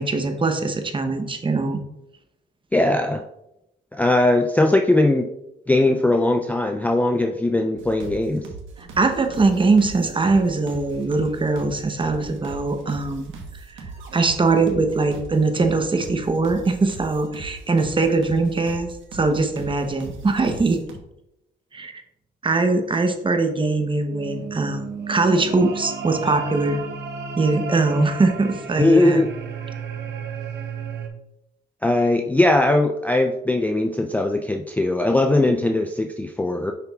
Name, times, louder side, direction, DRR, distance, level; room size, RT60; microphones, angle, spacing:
voice 1, 0.0-1.8 9.0-13.3 13.8-13.9 14.1-20.8 21.7-21.9 22.4-26.8 27.4-29.2, right 3 dB, 25° right, 6 dB, 0.9 m, -21 dB
voice 2, 2.7-3.2 3.9-5.3 5.7-8.4 28.8-29.3 31.8-36.7, left 2 dB, 10° left, 4 dB, 0.4 m, -19 dB
sound 1, 7.8-21.0, right 4 dB, 75° right, 1.2 m, -39 dB
sound 2, 24.1-31.1, right 5 dB, 60° right, 0.9 m, -33 dB
6.8 x 5.8 x 2.4 m, 0.85 s
cardioid pair, 90°, 20 cm